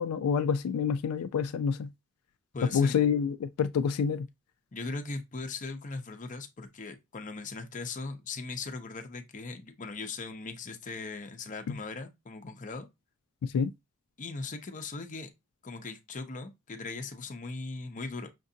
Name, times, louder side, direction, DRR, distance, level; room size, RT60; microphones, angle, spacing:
voice 1, 0.0-1.9 2.7-4.3 11.7-11.8 13.4-13.7, left 6 dB, 85° left, 0.3 m, -28 dB
voice 2, 2.5-3.0 4.7-12.9 14.2-15.3 15.6-18.3, left 3 dB, 35° left, 0.6 m, -39 dB
5.9 x 2.5 x 2.7 m
head